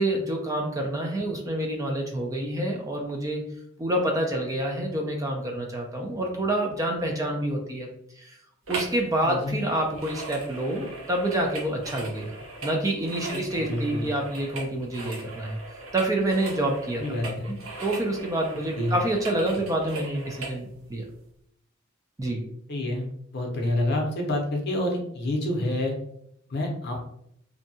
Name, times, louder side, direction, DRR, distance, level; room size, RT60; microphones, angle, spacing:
voice 1, 0.0-3.4 3.8-7.9 8.2-8.4 8.7-12.3 12.6-15.6 15.9-21.0 22.2-22.4, right 1 dB, 15° right, 1 dB, 0.3 m, -27 dB
sound 1, 8.7-9.0 9.3-20.6 21.1-21.2, right 2 dB, 85° right, 0.8 m, -39 dB
voice 2, 9.2-9.6 13.3-14.1 17.0-17.5 18.7-18.9 22.7-23.1 23.3-26.0 26.5-27.0, left 1 dB, 55° left, 0 dB, 0.6 m, -28 dB
2.6 x 2.2 x 2.6 m, 0.73 s
head